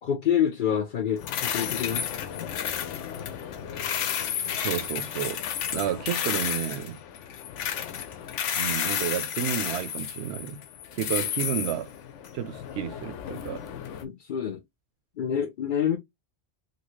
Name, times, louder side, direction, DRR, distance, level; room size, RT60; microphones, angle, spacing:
voice 1, 0.0-2.0 14.0-14.6 15.2-16.0, left 9 dB, 55° left, 0.6 m, -27 dB
sound 1, 1.2-14.0, left 9 dB, 85° left, 0.9 m, -32 dB
voice 2, 4.5-5.4 5.7-7.0 8.5-10.6 10.9-11.9 12.3-13.6, right 10 dB, 70° right, 0.8 m, -31 dB
2.9 x 2.7 x 3.1 m
omnidirectional pair, 1.2 m